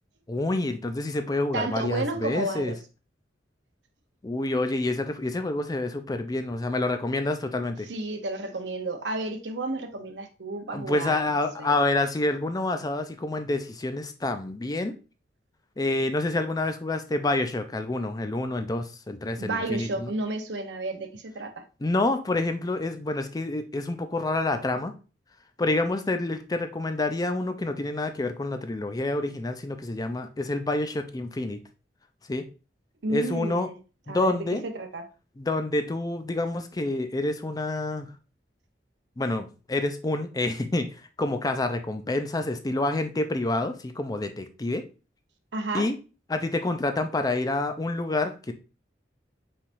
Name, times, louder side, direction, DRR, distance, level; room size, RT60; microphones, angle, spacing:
voice 1, 0.3-2.7 4.2-7.9 10.7-14.9 15.8-20.1 21.8-24.9 25.6-31.6 32.3-32.4 33.1-33.7 34.1-34.6 35.4-38.1 39.2-40.9 41.2-44.8 45.7-46.0 46.3-48.5, left 2 dB, 20° left, 0.4 m, -28 dB
voice 2, 1.5-2.8 7.9-11.7 19.4-21.6 33.0-33.8 34.1-34.4 34.6-35.0 45.5-45.9, right 2 dB, 70° right, 0.8 m, -32 dB
5.4 x 3.4 x 2.6 m
head